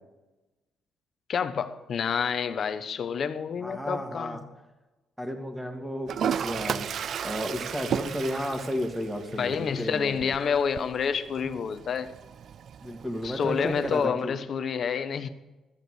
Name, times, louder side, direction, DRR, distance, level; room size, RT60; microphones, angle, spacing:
voice 1, 1.3-4.5 9.3-12.1 13.2-15.3, left 6 dB, 55° left, 11 dB, 1.0 m, -28 dB
voice 2, 3.6-4.4 5.2-6.9 7.2-10.3 12.8-14.3, equal, 5° right, 4 dB, 2.3 m, -33 dB
Toilet flush, 6.1-14.1, right 8 dB, 60° right, 0.3 m, -35 dB
13.5 x 8.1 x 6.4 m, 1.1 s
cardioid pair, 90°, 0 cm